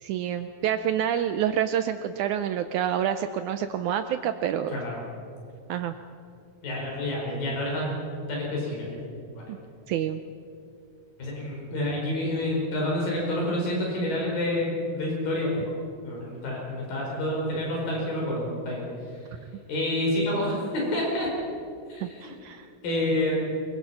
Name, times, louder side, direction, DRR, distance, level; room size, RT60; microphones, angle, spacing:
voice 1, 0.0-4.8 5.7-6.0 9.5-9.6 9.9-10.2 22.0-22.7, right 9 dB, 75° right, 9 dB, 1.9 m, -28 dB
voice 2, 4.7-5.0 6.6-8.0 8.3-9.0 9.3-9.5 11.2-15.7 16.0-18.8 19.1-19.3 19.7-21.3 21.9-22.3 22.8-23.3, left 1 dB, 85° left, -3 dB, 6.6 m, -28 dB
24.0 x 23.0 x 5.8 m, 2.5 s
omnidirectional pair, 3.9 m